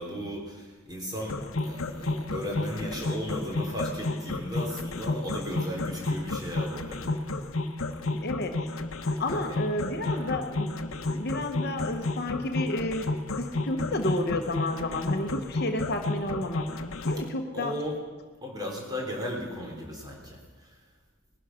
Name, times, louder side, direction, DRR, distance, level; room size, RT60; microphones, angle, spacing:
voice 1, 0.0-1.4 1.6-7.4 9.3-9.6 10.0-10.3 17.5-18.0 18.4-20.7, equal, 20° right, -1 dB, 3.6 m, -36 dB
sound 1, 1.3-17.3, left 2 dB, 75° left, 1.1 m, -31 dB
voice 2, 8.2-8.6 9.2-13.1 13.4-17.7, left 1 dB, 50° left, 5 dB, 1.1 m, -31 dB
20.0 x 11.0 x 5.9 m, 1.4 s
head